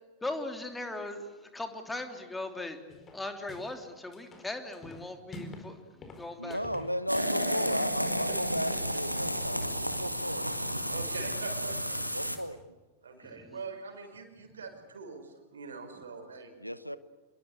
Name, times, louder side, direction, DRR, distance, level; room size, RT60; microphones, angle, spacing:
voice 1, 0.2-2.8 3.1-5.8 6.2-6.6 13.3-13.6, left 2 dB, 10° left, 6 dB, 3.2 m, -39 dB
sound 1, 2.9-3.8 4.1-5.7 6.0-7.4, left 2 dB, 25° left, 4.7 m, -47 dB
voice 2, 6.4-10.7 12.1-12.6 16.6-17.0, equal, 90° left, 15 dB, 1.0 m, -35 dB
sound 2, 7.1-12.4, equal, 90° right, 2.1 m, -32 dB
voice 3, 8.0-8.4 9.6-9.7 10.9-12.0 13.0-16.5, right 4 dB, 70° right, 6 dB, 5.0 m, -43 dB
27.0 x 22.0 x 8.2 m, 1.2 s
figure-of-eight pair, 90°, 0 cm